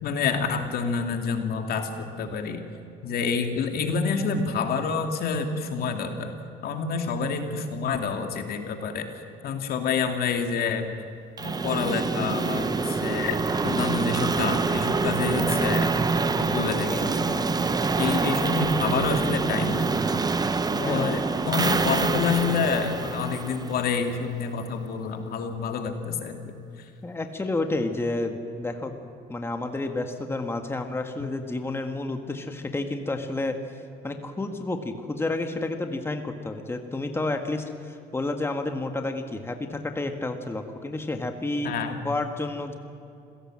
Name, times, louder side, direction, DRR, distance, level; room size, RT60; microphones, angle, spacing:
voice 1, 0.0-2.6 3.0-6.4 6.6-9.1 9.4-10.9 11.4-15.9 16.4-17.5 18.0-20.0 20.7-26.5 41.6-42.0, left 5 dB, 65° left, 5 dB, 2.5 m, -28 dB
sound 1, 11.4-24.2, right 4 dB, 25° right, 1.0 m, -26 dB
voice 2, 20.9-21.2 27.0-28.9 29.3-33.6 34.0-41.7 42.0-42.8, left 2 dB, 15° left, 5 dB, 1.8 m, -30 dB
27.0 x 17.0 x 7.7 m, 2.7 s
cardioid pair, 110°, 17 cm